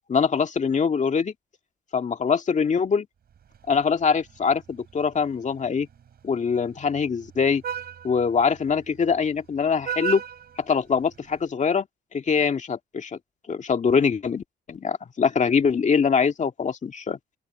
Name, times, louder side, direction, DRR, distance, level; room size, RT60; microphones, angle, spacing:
voice 1, 0.1-1.3 1.9-3.1 3.7-5.9 6.2-7.6 8.0-10.2 10.6-11.9 12.1-13.2 13.5-17.2, left 6 dB, 40° left, 2.1 m, -23 dB
Vehicle horn car horn honking, 3.3-11.5, right 9 dB, 55° right, 4.0 m, -39 dB
open air
cardioid pair, 85°, 19 cm